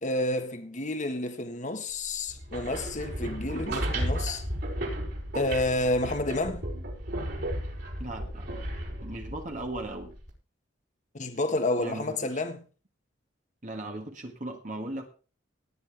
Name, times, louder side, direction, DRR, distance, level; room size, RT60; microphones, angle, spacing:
voice 1, 0.0-4.4 5.3-6.7 11.1-12.6, left 2 dB, 40° left, 1.6 m, -30 dB
sound 1, 2.3-10.3, right 1 dB, 55° right, 5.4 m, -34 dB
voice 2, 8.0-8.5 9.0-10.1 11.8-12.4 13.6-15.0, right 1 dB, 40° right, 1.9 m, -37 dB
18.5 x 9.8 x 3.5 m
head